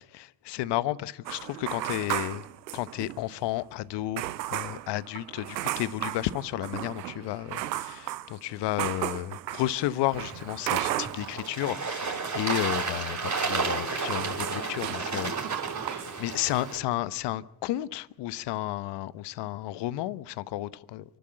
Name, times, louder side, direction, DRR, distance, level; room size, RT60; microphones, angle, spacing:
voice 1, 0.1-2.4 2.7-4.2 4.5-15.3 15.9-21.0, left 15 dB, 55° left, 1.0 m, -32 dB
sound 1, 1.3-3.3 3.6-3.7 4.2-11.5 11.8-16.1 16.4-16.8, right 14 dB, 85° right, 0.8 m, -35 dB
Bird / Water, 10.1-16.8, right 4 dB, 35° right, 7.5 m, -32 dB
28.5 x 12.0 x 8.8 m
figure-of-eight pair, 50°, 49 cm